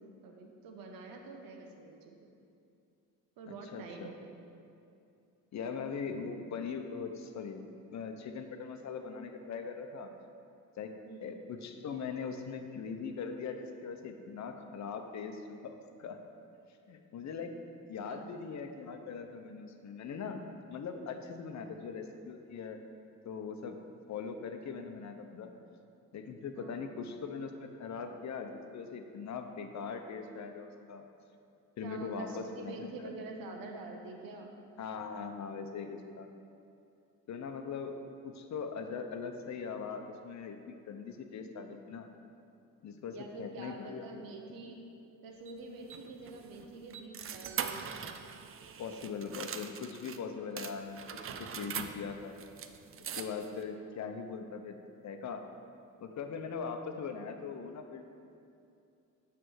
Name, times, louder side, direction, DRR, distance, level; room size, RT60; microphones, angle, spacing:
voice 1, 0.0-2.3 3.4-4.4 11.1-11.3 18.0-18.3 21.5-21.6 26.5-27.0 27.9-28.1 31.8-34.6 43.1-44.8 45.2-47.9, right 3 dB, 85° right, 2 dB, 0.9 m, -46 dB
voice 2, 3.7-4.1 5.5-7.6 7.9-10.1 10.8-10.9 11.2-16.2 16.9-17.5 17.9-22.8 23.2-23.8 24.1-25.5 26.1-31.0 31.8-33.1 34.8-36.3 37.3-38.0 38.2-42.1 42.8-44.1 48.8-52.4 53.0-55.4 56.0-58.0, left 5 dB, 55° left, 6 dB, 0.7 m, -41 dB
sound 1, 45.5-50.2 50.6-53.6, right 7 dB, 40° right, 0.5 m, -42 dB
9.2 x 3.4 x 6.3 m, 2.6 s
cardioid pair, 95°, 34 cm